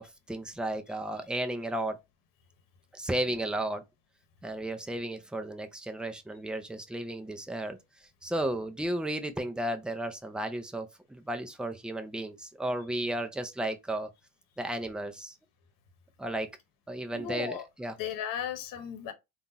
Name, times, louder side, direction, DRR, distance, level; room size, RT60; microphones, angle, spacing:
voice 1, 0.0-2.0 2.9-3.8 4.4-14.1 14.6-15.4 16.2-16.6 16.9-18.0, right 1 dB, ahead, 0.6 m, -34 dB
voice 2, 17.1-17.6 18.0-19.1, left 8 dB, 65° left, 1.1 m, -35 dB
3.6 x 2.5 x 2.7 m
supercardioid pair, 100°, 35 cm